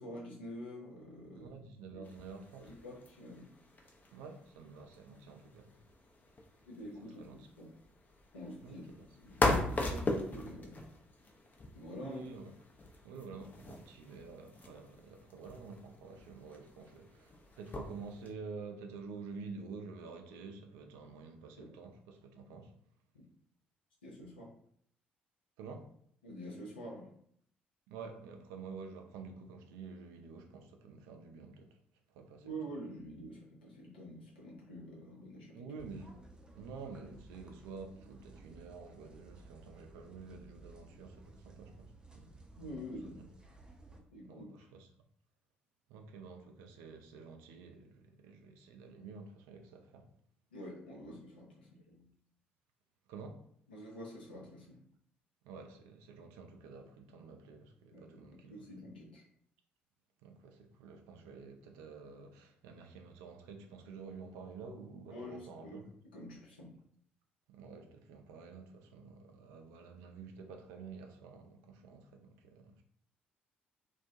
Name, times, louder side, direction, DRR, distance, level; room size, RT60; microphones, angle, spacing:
voice 1, 0.0-1.5 1.9-2.0 2.6-3.5 6.6-7.3 7.6-7.7 8.3-8.8 9.2-10.8 11.7-12.3 21.6-21.7 24.0-24.5 26.2-27.1 32.4-35.7 42.6-43.2 44.1-44.4 50.5-52.1 53.7-54.8 57.9-59.2 65.1-66.7, equal, 85° left, 0.6 m, -47 dB
voice 2, 1.3-2.7 4.1-5.8 7.2-7.5 8.6-9.1 12.0-12.5 13.0-22.8 25.6-25.9 27.9-31.8 32.1-32.6 35.5-36.2 36.5-43.3 44.2-44.9 45.9-50.1 53.1-53.5 55.4-58.7 60.2-65.9 67.5-72.8, right 4 dB, 70° right, 0.4 m, -49 dB
sound 1, 2.0-18.3, left 2 dB, 30° left, 0.5 m, -40 dB
sound 2, 35.8-44.0, right 2 dB, 15° right, 0.5 m, -56 dB
2.2 x 2.1 x 2.6 m
figure-of-eight pair, 45°, 5 cm